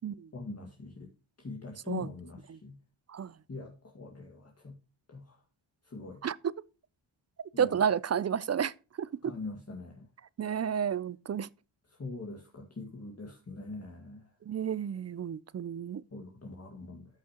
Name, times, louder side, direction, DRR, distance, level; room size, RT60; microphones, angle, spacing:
voice 1, 0.3-1.1 1.4-2.7 3.5-4.7 5.1-5.2 5.9-6.2 7.5-7.7 9.2-10.1 12.0-14.2 16.1-17.1, left 3 dB, 30° left, 1.9 m, -42 dB
voice 2, 6.2-6.5 7.6-9.3 10.4-11.5 14.5-16.0, right 8 dB, 35° right, 0.4 m, -31 dB
13.5 x 6.1 x 2.9 m
cardioid pair, 85°, 48 cm